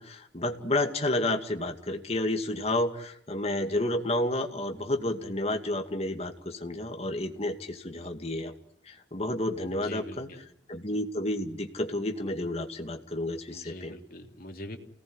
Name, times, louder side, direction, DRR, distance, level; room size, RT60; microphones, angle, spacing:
voice 1, 0.0-8.5 8.9-10.3 10.7-14.0, left 1 dB, 35° left, 5 dB, 2.4 m, -30 dB
voice 2, 9.7-10.4 13.5-14.8, left 1 dB, 55° left, 4 dB, 3.1 m, -43 dB
29.5 x 18.5 x 9.8 m, 0.72 s
head